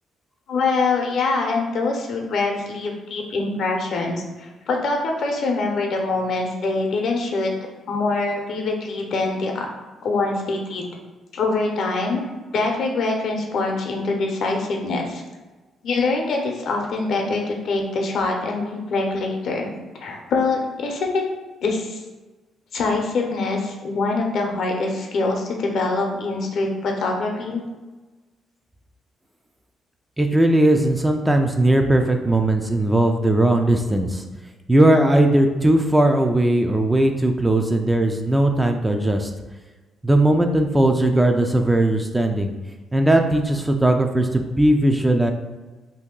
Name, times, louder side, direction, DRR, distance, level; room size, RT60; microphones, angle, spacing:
voice 1, 0.5-7.5 7.9-9.7 10.0-10.9 11.3-12.2 12.5-15.2 15.8-19.7 20.0-21.2 21.6-22.0 22.7-27.6, left 3 dB, 65° left, 1 dB, 0.7 m, -24 dB
voice 2, 30.2-34.2 34.7-39.3 40.0-42.5 42.9-45.3, right 1 dB, 10° right, 4 dB, 0.3 m, -18 dB
2.7 x 2.6 x 3.7 m, 1.2 s
cardioid pair, 90°, 0 cm